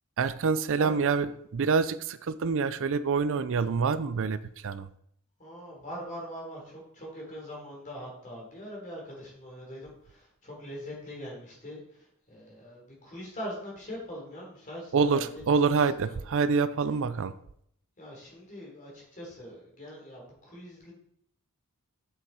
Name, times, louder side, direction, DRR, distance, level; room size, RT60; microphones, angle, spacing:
voice 1, 0.2-1.3 1.5-4.9 14.9-17.3, right 5 dB, 65° right, 14 dB, 0.5 m, -26 dB
voice 2, 5.4-16.2 18.0-20.9, equal, 40° left, -2 dB, 3.6 m, -42 dB
8.0 x 6.9 x 4.2 m, 0.69 s
head